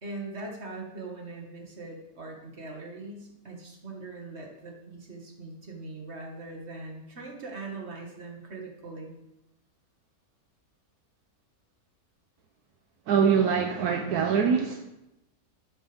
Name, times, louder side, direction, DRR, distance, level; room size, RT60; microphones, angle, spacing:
voice 1, 0.0-9.1, right 3 dB, 45° right, 0 dB, 2.1 m, -41 dB
voice 2, 13.1-14.8, right 6 dB, 75° right, 5 dB, 1.3 m, -23 dB
12.0 x 8.9 x 3.5 m, 0.92 s
omnidirectional pair, 1.7 m